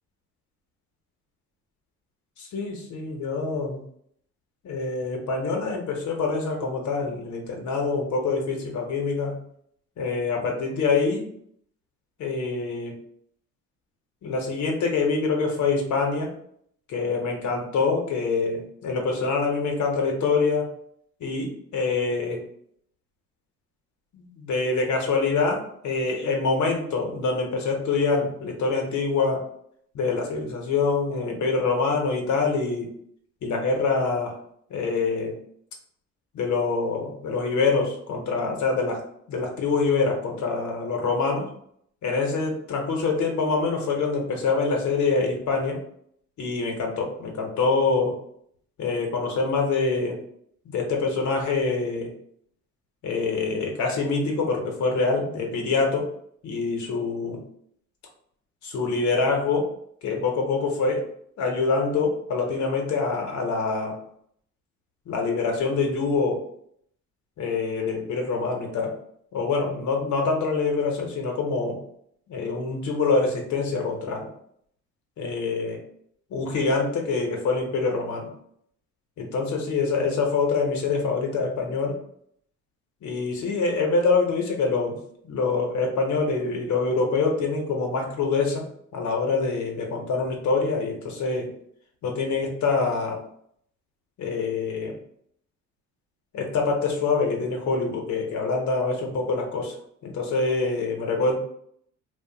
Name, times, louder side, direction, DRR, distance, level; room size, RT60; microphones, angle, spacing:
voice 1, 2.4-3.8 4.6-9.4 10.0-11.3 12.2-12.9 14.2-16.3 16.9-20.7 21.2-22.4 24.1-29.4 29.9-32.9 33.4-34.4 34.7-35.3 36.3-39.0 39.3-41.5 42.0-45.8 46.4-48.1 48.8-50.2 50.6-52.1 53.0-56.1 56.4-57.4 58.6-59.7 60.0-61.0 61.4-64.0 65.1-66.4 67.4-68.9 69.3-71.8 72.3-74.3 75.2-75.8 76.3-78.3 79.2-82.0 83.0-85.0 85.2-88.7 88.9-91.5 92.0-93.2 94.2-94.9 96.3-99.8 100.0-101.4, left 4 dB, 70° left, 1 dB, 0.8 m, -25 dB
2.4 x 2.1 x 3.7 m, 0.68 s
cardioid pair, 90°, 30 cm